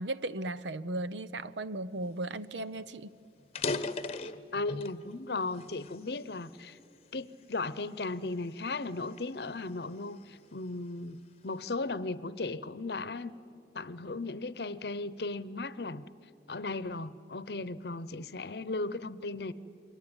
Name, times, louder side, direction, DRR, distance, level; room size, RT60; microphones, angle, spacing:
voice 1, 0.0-3.1, right 2 dB, 85° right, 15 dB, 0.8 m, -36 dB
sound 1, 2.4-2.5 2.8-2.9 3.4-5.0 5.6-6.8 7.4-7.7 8.3-10.3, left 3 dB, 35° left, 0.9 m, -37 dB
voice 2, 4.5-6.8 7.1-11.2 11.4-13.3 13.7-16.0 16.5-19.5, left 3 dB, 65° left, 17 dB, 0.8 m, -36 dB
28.0 x 23.5 x 9.0 m, 2.5 s
head